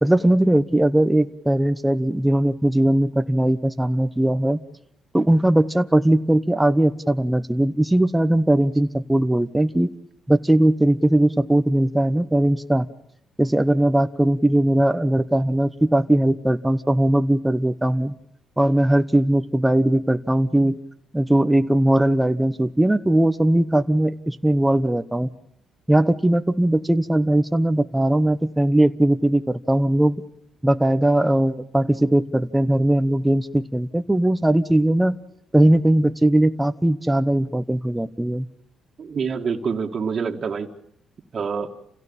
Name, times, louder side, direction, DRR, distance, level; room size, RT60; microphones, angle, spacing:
voice 1, 0.0-4.6 5.1-9.9 10.3-12.9 13.4-18.1 18.6-20.8 21.1-25.3 25.9-30.2 30.6-35.2 35.5-38.5, right 1 dB, 10° right, 9 dB, 1.0 m, -19 dB
voice 2, 39.0-40.7 41.3-41.7, right 6 dB, 45° right, 2 dB, 2.1 m, -26 dB
28.5 x 16.5 x 8.8 m, 0.72 s
cardioid pair, 90°, 0 cm